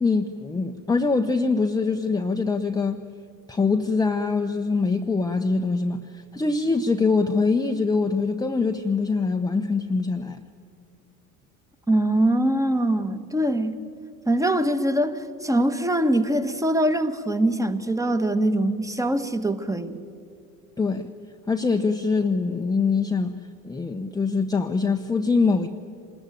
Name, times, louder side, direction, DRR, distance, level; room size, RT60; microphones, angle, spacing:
voice 1, 0.0-3.1 3.5-10.4 20.8-21.1 21.5-23.4 23.6-25.7, left 4 dB, 10° left, 0.9 m, -23 dB
voice 2, 11.9-13.8 14.3-20.0, right 1 dB, 5° right, 1.4 m, -23 dB
26.5 x 20.5 x 9.2 m
figure-of-eight pair, 65°, 46 cm